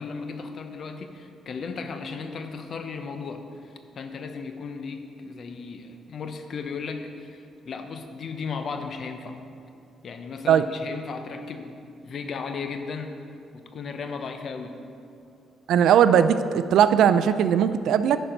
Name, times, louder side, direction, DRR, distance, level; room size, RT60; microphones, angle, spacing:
voice 1, 0.0-9.4 10.0-11.8 12.0-13.1 13.5-14.8, left 5 dB, 55° left, 7 dB, 0.7 m, -35 dB
voice 2, 15.7-18.2, right 8 dB, 80° right, 12 dB, 0.3 m, -19 dB
10.0 x 4.5 x 5.1 m, 2.5 s
cardioid pair, 90°, 0 cm